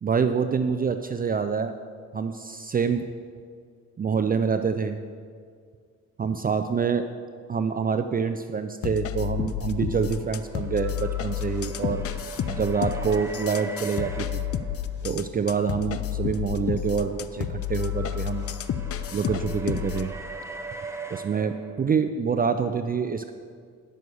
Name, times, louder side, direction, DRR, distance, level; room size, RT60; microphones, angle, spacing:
voice 1, 0.0-1.7 2.1-3.0 4.0-5.0 6.2-7.1 7.5-12.0 12.4-14.4 15.0-18.5 19.1-20.1 21.1-23.3, right 6 dB, 30° right, 8 dB, 0.5 m, -26 dB
sound 1, 8.8-20.1, left 10 dB, 50° left, 0.5 m, -31 dB
sound 2, 9.6-15.3 16.6-22.0, right 3 dB, 10° right, 0.9 m, -41 dB
11.0 x 6.3 x 6.9 m, 2.1 s
cardioid pair, 90°, 30 cm